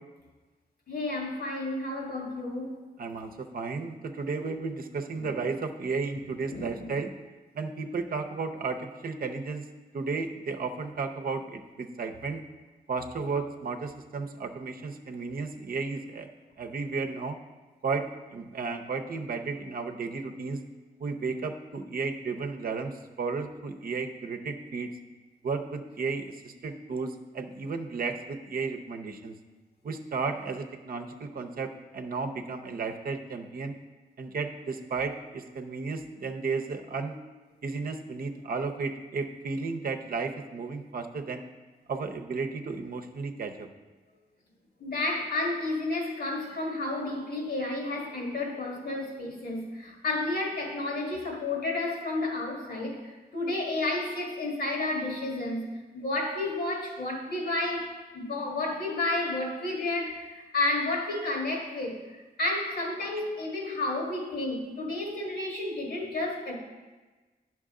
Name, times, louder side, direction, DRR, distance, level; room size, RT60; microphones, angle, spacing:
voice 1, 0.9-2.8 5.2-5.3 6.5-6.9 44.8-53.0 53.3-66.6, left 2 dB, 70° left, -1 dB, 1.9 m, -31 dB
voice 2, 3.0-7.1 7.5-9.7 9.9-12.4 12.9-16.3 16.6-17.4 17.8-20.6 21.0-24.9 25.4-29.3 29.8-33.7 34.2-37.2 37.6-41.4 41.9-43.7, right 4 dB, 60° right, 5 dB, 0.7 m, -33 dB
10.5 x 6.0 x 3.7 m, 1.3 s
wide cardioid pair, 115°, 17 cm